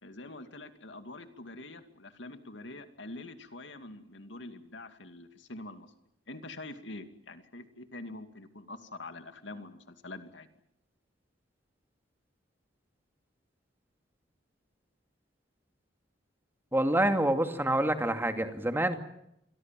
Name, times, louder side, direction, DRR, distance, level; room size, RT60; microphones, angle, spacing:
voice 1, 0.0-5.9 6.3-10.5, left 2 dB, 70° left, 8 dB, 2.6 m, -45 dB
voice 2, 16.7-19.0, right 1 dB, 10° right, 6 dB, 2.5 m, -27 dB
28.0 x 22.5 x 7.7 m, 0.79 s
head